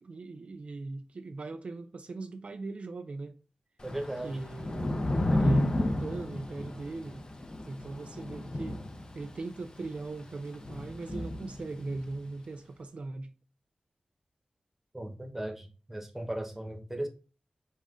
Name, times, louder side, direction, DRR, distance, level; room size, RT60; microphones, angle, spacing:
voice 1, 0.0-3.4 4.2-7.3 7.7-8.8 9.1-13.3, right 3 dB, 55° right, 0.4 m, -39 dB
Thunder / Rain, 3.8-12.2, left 1 dB, 35° left, 0.5 m, -32 dB
voice 2, 3.8-4.4 14.9-17.1, right 1 dB, 10° right, 0.9 m, -37 dB
5.4 x 2.4 x 3.7 m
wide cardioid pair, 105°, 2 cm